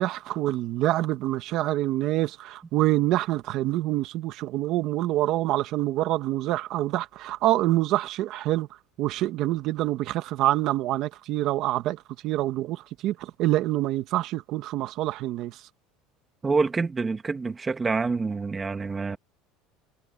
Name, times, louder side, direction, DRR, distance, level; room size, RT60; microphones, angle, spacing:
voice 1, 0.0-8.7 9.0-15.6, right 15 dB, 55° right, 1.3 m, -26 dB
voice 2, 16.4-19.2, right 4 dB, 15° right, 1.7 m, -27 dB
cardioid pair, 140°, 0 cm